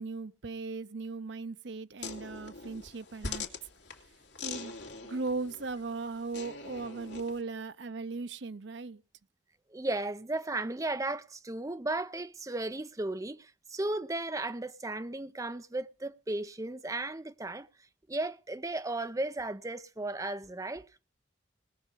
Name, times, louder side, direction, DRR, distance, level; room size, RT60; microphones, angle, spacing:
voice 1, 0.0-3.5 4.4-4.7 5.0-9.0, right 3 dB, 65° right, 0.6 m, -38 dB
sound 1, 2.0-7.4, left 4 dB, 75° left, 2.5 m, -43 dB
voice 2, 9.7-17.7 18.1-20.8, right 2 dB, 15° right, 0.5 m, -35 dB
20.0 x 6.6 x 5.3 m
head